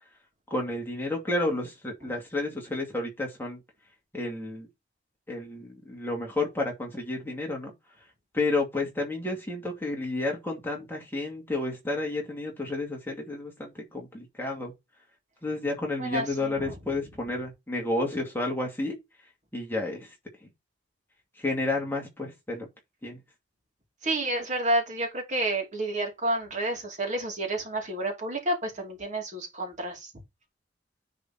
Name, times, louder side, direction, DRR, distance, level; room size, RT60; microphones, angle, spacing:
voice 1, 0.5-3.6 4.1-4.7 5.3-7.7 8.3-14.7 15.4-19.0 19.5-20.1 21.4-22.7 23.0-23.2, left 2 dB, 10° left, 2.4 m, -31 dB
voice 2, 16.0-16.7 24.0-30.1, right 1 dB, 40° right, 2.6 m, -30 dB
10.0 x 4.2 x 4.3 m
head